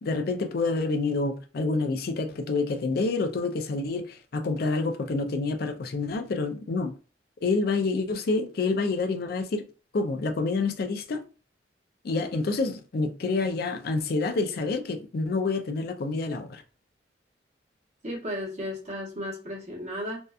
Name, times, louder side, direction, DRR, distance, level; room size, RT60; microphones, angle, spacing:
voice 1, 0.0-6.9 7.4-9.6 9.9-11.2 12.0-16.6, left 3 dB, 55° left, 0.4 m, -28 dB
voice 2, 18.0-20.2, equal, 40° right, 1.0 m, -34 dB
2.7 x 2.2 x 2.3 m
head